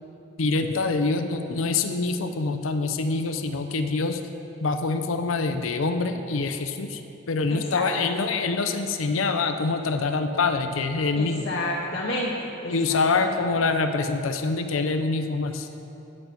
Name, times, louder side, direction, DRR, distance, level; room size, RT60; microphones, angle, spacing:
voice 1, 0.4-4.2 4.6-7.0 7.3-11.5 12.7-15.7, left 3 dB, 90° left, 7 dB, 0.6 m, -25 dB
voice 2, 7.5-7.8 11.2-13.4, left 1 dB, 60° left, -4 dB, 1.0 m, -30 dB
9.7 x 5.2 x 5.9 m, 2.8 s
head